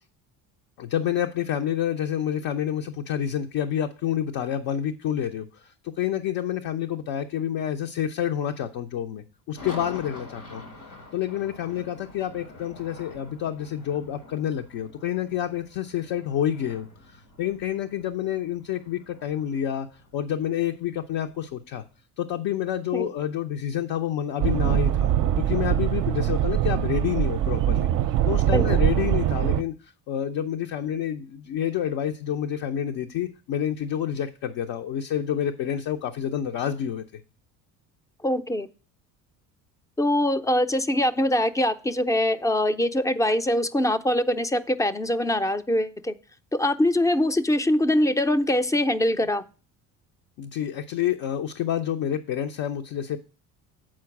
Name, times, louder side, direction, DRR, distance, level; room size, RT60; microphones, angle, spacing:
voice 1, 0.8-10.6 11.1-19.9 20.1-21.8 22.2-27.9 28.3-37.0 50.4-53.2, left 10 dB, 60° left, 5 dB, 0.7 m, -28 dB
sound 1, 9.6-21.7, left 2 dB, 85° left, 2.2 m, -46 dB
sound 2, 24.4-29.6, right 11 dB, 50° right, 0.5 m, -23 dB
voice 2, 38.2-38.7 40.0-46.1 46.5-49.4, left 1 dB, 10° left, 12 dB, 0.4 m, -23 dB
7.5 x 4.5 x 5.8 m, 0.38 s
supercardioid pair, 80°, 39 cm